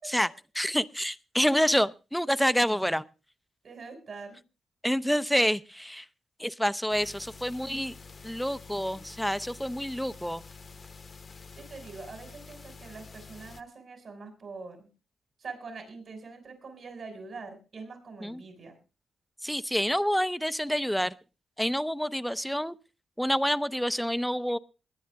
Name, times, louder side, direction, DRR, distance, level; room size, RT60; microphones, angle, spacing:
voice 1, 0.0-3.0 4.8-6.1 6.4-7.9 8.2-10.4 18.2-18.4 19.4-21.2 21.6-22.8 23.2-24.6, equal, ahead, 0.7 m, -28 dB
voice 2, 3.6-4.4 8.9-9.0 11.5-14.9 15.4-18.8, right 4 dB, 60° right, 5.7 m, -44 dB
sound 1, 6.9-13.6, left 4 dB, 45° left, 1.1 m, -48 dB
21.0 x 10.0 x 3.5 m
cardioid pair, 65°, 0 cm